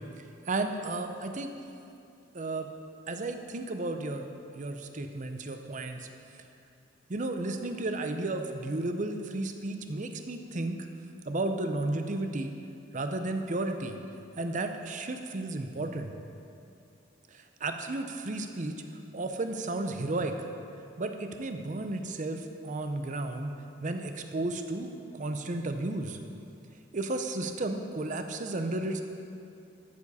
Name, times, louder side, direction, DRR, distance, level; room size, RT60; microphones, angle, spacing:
voice 1, 0.5-1.5 2.3-2.7 3.1-6.1 7.1-10.9 11.2-12.5 12.9-14.0 14.4-16.1 17.3-18.8 19.1-20.4 21.0-23.5 23.8-26.2 26.9-29.0, right 2 dB, 40° right, 6 dB, 0.6 m, -33 dB
13.0 x 7.2 x 4.2 m, 2.7 s
head